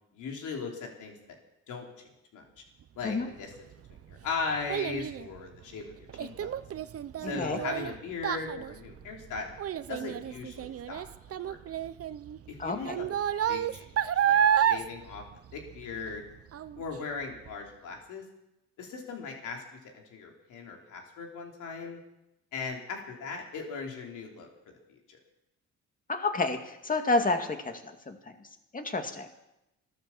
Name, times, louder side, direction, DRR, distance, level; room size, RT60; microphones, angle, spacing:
voice 1, 0.1-1.1 1.7-2.4 2.9-3.5 3.9-6.5 7.2-9.6 9.9-11.0 11.4-11.6 12.5-13.1 13.5-13.9 14.2-15.2 15.5-16.3 16.8-18.2 18.8-19.6 20.1-22.0 22.5-24.5 24.9-25.2, left 4 dB, 85° left, 1 dB, 3.4 m, -38 dB
Child speech kid speaking, 3.5-16.2 16.5-17.0 17.5-17.6, right 9 dB, 50° right, 0.7 m, -30 dB
voice 2, 7.2-7.6 12.6-13.0 26.1-28.2 28.7-29.3, left 3 dB, 25° left, 5 dB, 2.2 m, -30 dB
15.0 x 12.5 x 7.2 m, 0.89 s
cardioid pair, 90°, 30 cm